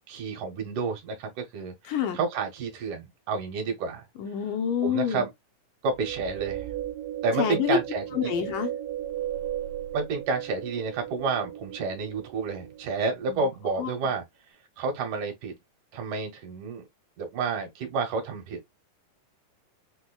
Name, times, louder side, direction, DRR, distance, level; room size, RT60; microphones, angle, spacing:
voice 1, 0.1-4.0 4.8-5.3 5.8-6.7 7.2-8.3 9.9-14.2 14.8-15.6 15.9-16.8 17.2-18.6, right 4 dB, 70° right, 2.4 m, -30 dB
voice 2, 1.9-2.2 4.2-5.2 7.4-7.8 8.1-8.7 13.3-13.5 13.8-13.9, left 8 dB, 80° left, 2.1 m, -27 dB
sound 1, 5.9-13.3, right 12 dB, 85° right, 2.3 m, -36 dB
6.2 x 2.1 x 2.2 m
omnidirectional pair, 3.9 m